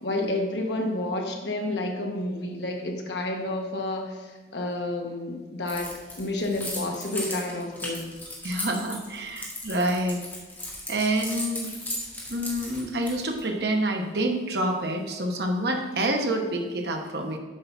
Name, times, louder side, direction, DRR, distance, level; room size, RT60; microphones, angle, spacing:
voice 1, 0.0-8.1, left 2 dB, 70° left, 2 dB, 1.3 m, -30 dB
Keys jangling, 5.7-13.4, left 1 dB, 10° left, 1.8 m, -36 dB
voice 2, 8.4-10.2 10.9-11.7 12.3-17.4, right 1 dB, 65° right, 3 dB, 1.1 m, -27 dB
7.7 x 5.6 x 5.9 m, 1.3 s
head